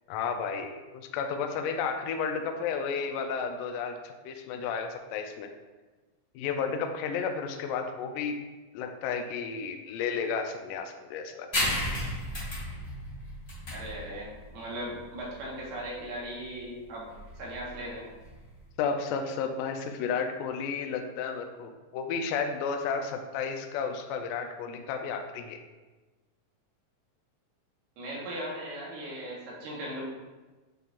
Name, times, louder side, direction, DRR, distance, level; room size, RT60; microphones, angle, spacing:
voice 1, 0.1-5.5 6.4-8.4 8.7-11.5 18.8-25.6, left 6 dB, 80° left, 5 dB, 2.0 m, -32 dB
sound 1, 11.5-18.6, left 1 dB, 25° left, 1.4 m, -35 dB
voice 2, 13.7-18.0 28.0-30.0, right 1 dB, 80° right, -4 dB, 2.9 m, -38 dB
7.7 x 5.3 x 2.4 m, 1.2 s
omnidirectional pair, 3.9 m